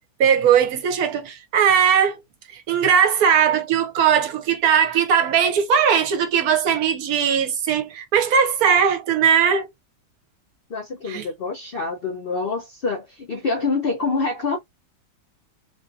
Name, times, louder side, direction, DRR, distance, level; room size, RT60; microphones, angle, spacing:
voice 1, 0.2-2.2 2.5-9.7 11.1-11.3, right 7 dB, 65° right, 1.0 m, -19 dB
voice 2, 10.7-14.6, left 4 dB, 80° left, 0.5 m, -26 dB
3.2 x 2.5 x 2.5 m
omnidirectional pair, 1.8 m